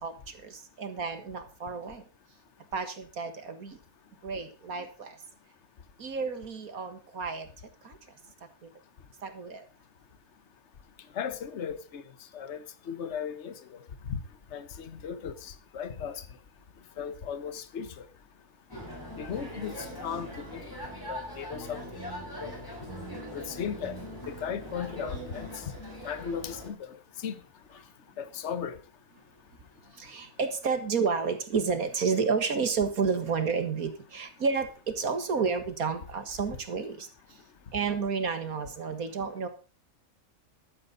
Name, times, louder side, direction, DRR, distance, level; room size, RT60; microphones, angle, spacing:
voice 1, 0.0-2.0 2.7-3.8 4.2-5.2 6.0-7.5 7.8-7.9 9.2-9.6 30.0-37.1 37.7-39.5, right 5 dB, 70° right, 2.1 m, -31 dB
voice 2, 11.1-12.0 12.3-14.2 14.5-16.3 17.0-18.1 19.2-20.6 21.1-21.9 22.4-22.6 23.3-24.0 24.3-25.6 26.0-27.4 28.2-28.8, left 7 dB, 50° left, 1.4 m, -36 dB
sound 1, 18.7-26.7, equal, 15° left, 5.8 m, -41 dB
14.0 x 13.0 x 4.0 m
omnidirectional pair, 1.6 m